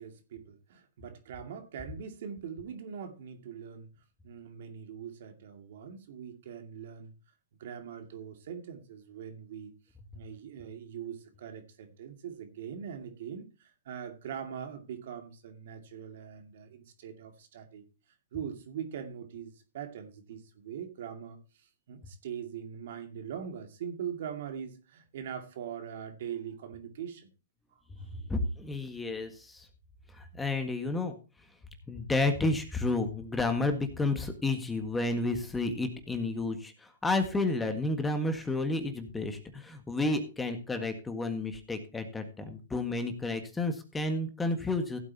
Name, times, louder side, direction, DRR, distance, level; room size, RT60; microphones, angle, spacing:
voice 1, 0.0-3.9 4.2-7.1 7.6-9.8 10.1-17.9 18.3-27.3 28.0-28.1, right 8 dB, 60° right, 6 dB, 2.3 m, -42 dB
voice 2, 28.1-29.7 30.1-31.2 31.9-45.0, left 2 dB, 10° left, 7 dB, 1.7 m, -31 dB
16.0 x 8.4 x 2.9 m, 0.32 s
hypercardioid pair, 130°, 0 cm